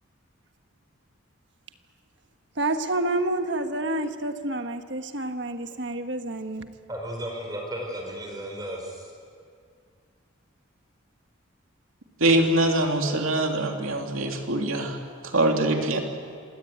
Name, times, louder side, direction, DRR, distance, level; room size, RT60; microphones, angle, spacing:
voice 1, 2.5-6.7, right 2 dB, 55° right, 7 dB, 1.5 m, -28 dB
voice 2, 6.9-9.1, equal, 20° right, 1 dB, 4.4 m, -34 dB
voice 3, 12.2-15.0 15.2-16.0, right 1 dB, 85° right, 2 dB, 2.8 m, -23 dB
26.5 x 17.0 x 9.3 m, 2.2 s
head